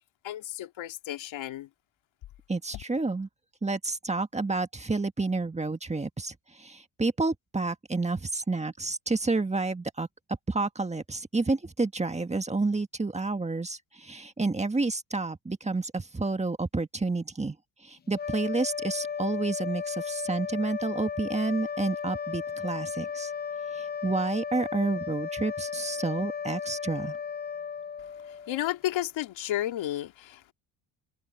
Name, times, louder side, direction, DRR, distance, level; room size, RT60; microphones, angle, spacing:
voice 1, 0.2-1.7 28.5-30.5, left 13 dB, 70° left, 2.2 m, -32 dB
voice 2, 2.5-3.3 3.6-10.1 10.5-17.5 17.8-23.3 23.7-27.2, right 3 dB, 15° right, 1.7 m, -30 dB
sound 1, 18.1-28.7, left 6 dB, 25° left, 0.4 m, -35 dB
open air
cardioid pair, 105°, 47 cm